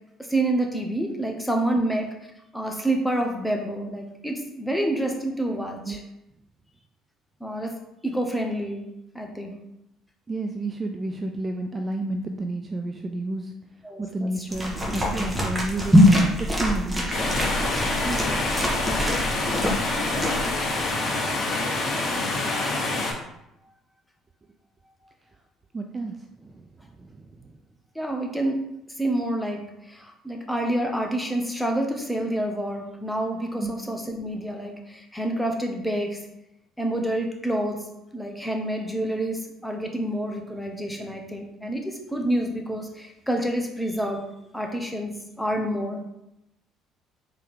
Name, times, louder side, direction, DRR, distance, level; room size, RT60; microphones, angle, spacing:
voice 1, 0.2-2.1 2.5-6.0 7.4-7.7 8.0-8.8 9.1-9.5 13.8-14.5 18.0-18.5 19.6-20.1 20.4-20.5 21.2-21.3 27.9-28.6 29.0-36.2 36.8-37.8 38.1-44.2 44.5-46.1, right 1 dB, 5° left, 2 dB, 1.1 m, -28 dB
voice 2, 10.3-13.5 14.0-16.0 16.4-17.1 25.7-26.2 26.4-26.7 27.0-27.6 33.6-33.7, right 2 dB, 30° right, 5 dB, 0.4 m, -31 dB
sound 1, 14.5-20.8, left 1 dB, 15° right, 1.4 m, -23 dB
sound 2, 17.1-23.1, left 2 dB, 45° left, 1.6 m, -26 dB
4.4 x 3.2 x 3.7 m, 0.85 s
hypercardioid pair, 55°, 0 cm